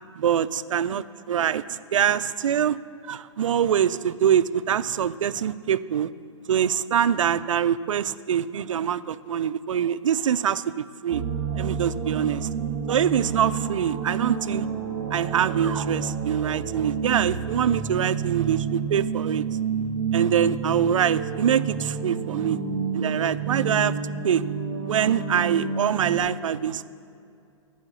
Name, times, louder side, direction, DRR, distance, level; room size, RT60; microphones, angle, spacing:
voice 1, 0.2-2.8 3.1-6.1 6.5-11.2 11.5-12.5 12.9-14.7 15.1-19.4 20.1-22.6 22.9-23.9 24.2-24.4 24.9-26.8, right 9 dB, 90° right, 15 dB, 0.4 m, -24 dB
sound 1, 11.1-26.2, right 6 dB, 40° right, 1.6 m, -29 dB
11.0 x 5.0 x 8.1 m, 2.6 s
hypercardioid pair, 160°, 16 cm